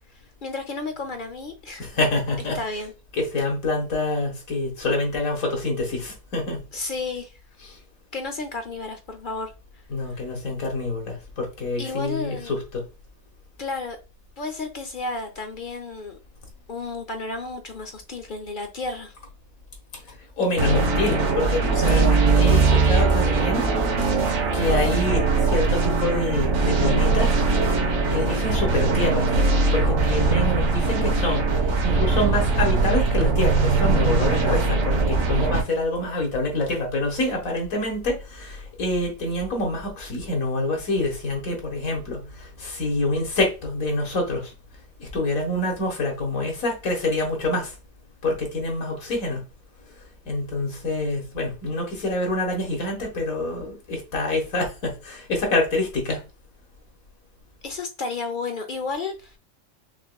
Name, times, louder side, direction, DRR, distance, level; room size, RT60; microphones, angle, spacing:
voice 1, 0.4-2.0 2.5-2.9 6.7-7.3 8.1-9.5 11.8-12.5 13.6-14.0 14.4-16.2 16.7-19.1 21.7-22.1 57.6-59.4, left 3 dB, 50° left, 0.7 m, -32 dB
voice 2, 1.8-2.6 3.2-6.6 9.9-12.8 20.4-23.7 24.5-27.3 28.1-29.3 29.7-31.5 31.8-44.5 45.0-47.7 48.2-49.4 50.3-56.2, left 2 dB, 90° left, 1.9 m, -26 dB
sound 1, 20.6-35.6, right 3 dB, 60° right, 1.3 m, -21 dB
5.7 x 3.0 x 2.2 m
omnidirectional pair, 1.4 m